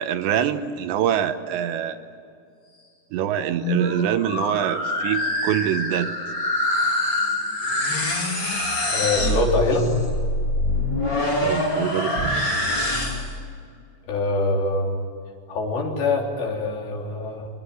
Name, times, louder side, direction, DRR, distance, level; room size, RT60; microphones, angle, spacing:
voice 1, 0.0-2.0 3.1-6.1 11.4-12.3, right 10 dB, 80° right, 9 dB, 3.2 m, -25 dB
sound 1, 3.4-13.4, left 1 dB, 30° left, 3.1 m, -25 dB
voice 2, 8.9-9.9 14.1-15.0 15.5-17.5, left 2 dB, 70° left, 0 dB, 5.8 m, -24 dB
24.5 x 21.0 x 9.8 m, 2.4 s
omnidirectional pair, 5.2 m